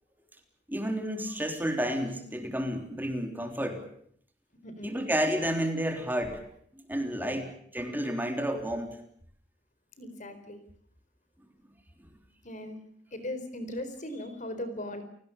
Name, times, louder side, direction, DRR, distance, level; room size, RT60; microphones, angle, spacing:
voice 1, 0.7-3.8 4.8-6.4 6.9-9.0, equal, 10° right, 5 dB, 3.5 m, -31 dB
voice 2, 4.6-5.0 7.2-7.4 10.0-10.6 12.4-12.8 13.1-15.0, left 1 dB, 45° left, 11 dB, 4.2 m, -38 dB
29.5 x 19.0 x 7.2 m, 0.66 s
head